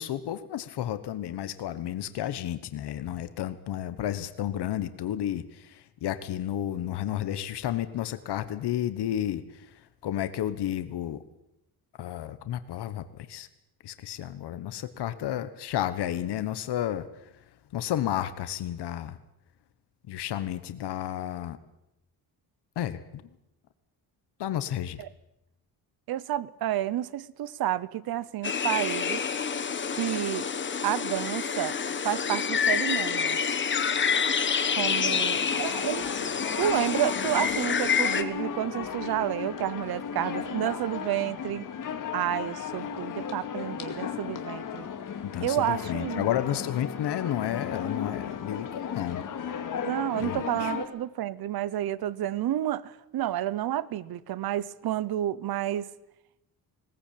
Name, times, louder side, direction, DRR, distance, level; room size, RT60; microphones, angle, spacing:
voice 1, 0.0-9.7 10.0-11.2 12.0-13.5 13.8-17.1 17.7-19.2 20.1-21.6 22.8-23.2 24.4-25.0 45.2-49.2 50.2-50.7, left 11 dB, 90° left, 1.3 m, -32 dB
voice 2, 26.1-29.3 29.9-30.5 30.8-33.4 34.7-36.1 36.6-41.7 42.1-44.9 45.4-46.3 49.8-55.9, right 12 dB, 65° right, 0.8 m, -30 dB
sound 1, 28.4-38.2, left 6 dB, 30° left, 1.2 m, -28 dB
sound 2, 34.8-50.9, left 7 dB, 50° left, 2.3 m, -35 dB
20.5 x 18.5 x 8.7 m
wide cardioid pair, 180°, 39 cm